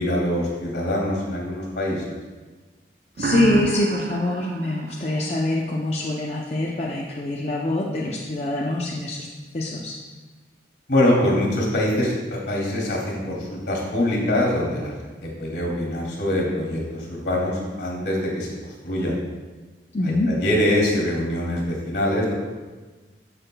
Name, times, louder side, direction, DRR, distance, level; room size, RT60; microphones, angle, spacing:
voice 1, 0.0-2.2 10.9-18.5 18.8-19.2 20.0-22.3, left 1 dB, 65° left, -2 dB, 2.5 m, -24 dB
voice 2, 3.2-9.3 9.5-9.9 19.9-20.3, left 2 dB, 35° left, -3 dB, 0.6 m, -24 dB
sound 1, 3.2-5.9, right 4 dB, 50° right, 0.3 m, -30 dB
13.5 x 5.7 x 2.2 m, 1.3 s
head